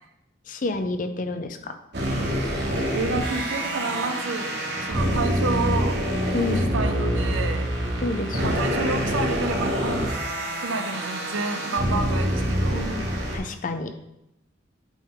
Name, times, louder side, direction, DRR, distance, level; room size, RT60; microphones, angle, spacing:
voice 1, 0.5-1.8 6.3-6.6 8.0-8.9 12.7-13.9, left 2 dB, 45° left, 8 dB, 0.5 m, -29 dB
sound 1, 1.9-13.4, equal, 60° right, 1.2 m, -26 dB
voice 2, 2.9-4.6 4.9-6.0 6.3-7.7 8.4-10.1 10.6-12.9, right 3 dB, 85° right, 7 dB, 0.7 m, -29 dB
8.2 x 3.5 x 3.8 m, 0.86 s
head